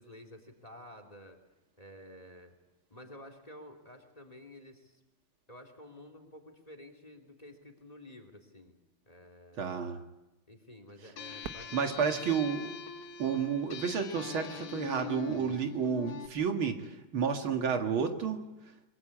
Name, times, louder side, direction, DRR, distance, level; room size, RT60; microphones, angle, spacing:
voice 1, 0.0-1.4 1.8-2.5 2.9-5.0 5.5-8.8 9.1-9.7 10.5-12.4 15.3-15.6, left 1 dB, 20° left, 7 dB, 3.0 m, -51 dB
voice 2, 9.6-10.0 11.7-12.7 13.2-18.7, right 6 dB, 85° right, 5 dB, 2.8 m, -31 dB
sound 1, 11.2-16.3, left 8 dB, 80° left, 2.2 m, -43 dB
Fireworks, 11.4-14.2 14.9-15.0 15.6-16.1 18.0-18.1, right 7 dB, 55° right, 1.5 m, -50 dB
23.5 x 22.5 x 8.6 m, 1.0 s
omnidirectional pair, 2.2 m